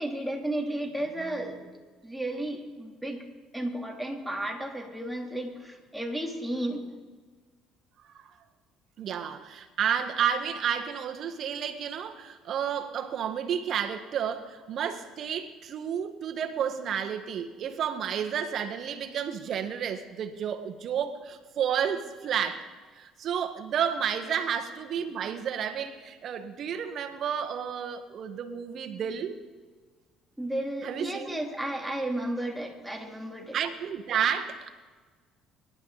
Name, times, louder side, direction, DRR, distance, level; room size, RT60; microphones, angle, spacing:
voice 1, 0.0-1.6 2.0-3.3 3.5-6.9 30.4-33.6, right 1 dB, 5° right, 1 dB, 3.1 m, -33 dB
voice 2, 9.0-22.6 22.9-29.4 30.8-31.4 33.5-34.7, right 8 dB, 55° right, 7 dB, 1.5 m, -31 dB
24.5 x 11.5 x 4.1 m, 1.4 s
hypercardioid pair, 70°, 0 cm